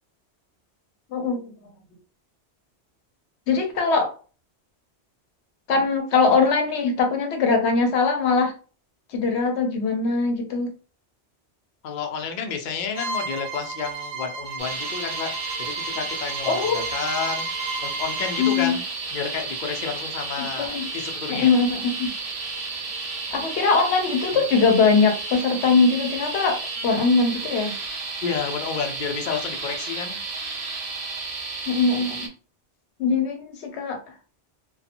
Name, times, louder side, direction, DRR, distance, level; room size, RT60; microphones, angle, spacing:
voice 1, 1.1-1.5 3.5-4.1 5.7-8.5 9.1-10.7 16.5-16.9 18.4-18.8 20.6-20.9 21.3-22.1 23.3-27.8 31.7-32.3 33.0-34.0, left 4 dB, 80° left, 4 dB, 0.9 m, -21 dB
voice 2, 11.8-15.3 15.6-17.5 17.8-18.8 19.1-21.5 24.3-24.4 28.2-30.2, left 6 dB, 55° left, 4 dB, 0.6 m, -30 dB
Bowed string instrument, 12.9-18.7, right 4 dB, 75° right, 1.0 m, -33 dB
sound 1, 14.6-32.3, right 3 dB, 45° right, 0.5 m, -32 dB
2.7 x 2.3 x 2.5 m, 0.38 s
omnidirectional pair, 1.1 m